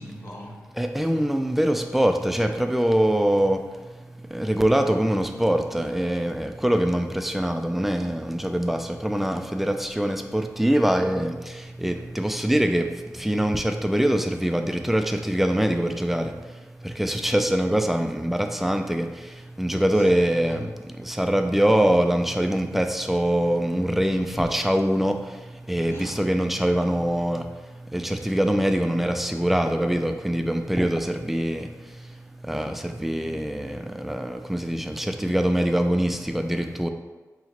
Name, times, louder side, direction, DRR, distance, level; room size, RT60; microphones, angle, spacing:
voice 1, 0.0-0.7 19.9-20.7 25.9-26.2, left 1 dB, 45° left, -4 dB, 0.9 m, -40 dB
voice 2, 0.8-36.9, right 1 dB, 5° right, 5 dB, 0.3 m, -24 dB
4.2 x 2.9 x 2.9 m, 1.3 s
wide cardioid pair, 80°, 6 cm